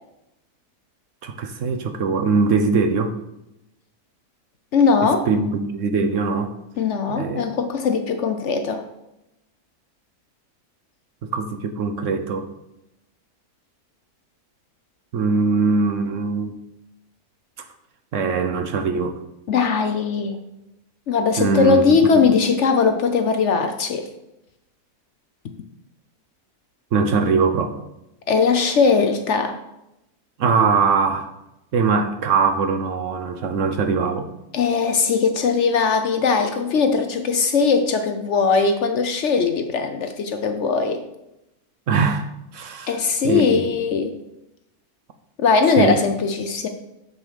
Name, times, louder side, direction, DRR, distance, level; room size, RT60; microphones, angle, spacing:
voice 1, 1.2-3.1 5.0-6.5 7.1-7.4 11.2-12.5 15.1-16.5 18.1-19.2 21.4-21.8 22.1-22.2 26.9-27.7 30.4-31.3 31.7-34.3 41.9-42.3 42.5-43.7 45.8-46.0, right 4 dB, 65° right, 7 dB, 1.0 m, -21 dB
voice 2, 4.7-5.3 6.8-8.8 19.5-20.4 21.1-24.1 28.3-29.6 34.5-41.0 42.9-44.2 45.4-46.7, left 5 dB, 60° left, 6 dB, 0.9 m, -20 dB
7.3 x 6.3 x 5.0 m, 0.89 s
omnidirectional pair, 1.6 m